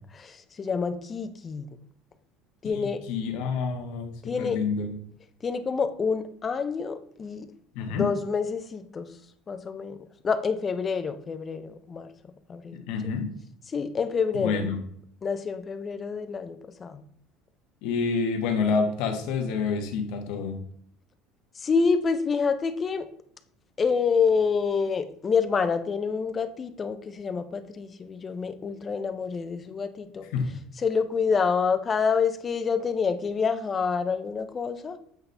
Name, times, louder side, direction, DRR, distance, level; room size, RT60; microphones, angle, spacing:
voice 1, 0.2-1.7 2.6-3.0 4.3-4.6 5.4-7.5 8.0-9.1 9.5-10.0 10.2-12.1 12.5-12.8 13.7-14.7 15.2-17.0 21.6-23.1 23.8-30.2 30.8-35.0, left 5 dB, 20° left, 10 dB, 0.5 m, -27 dB
voice 2, 2.7-4.9 7.7-8.1 12.7-13.3 14.3-14.8 17.8-20.6 30.3-30.6, left 5 dB, 65° left, 4 dB, 1.3 m, -28 dB
8.0 x 4.1 x 3.3 m, 0.65 s
cardioid pair, 160°, 0 cm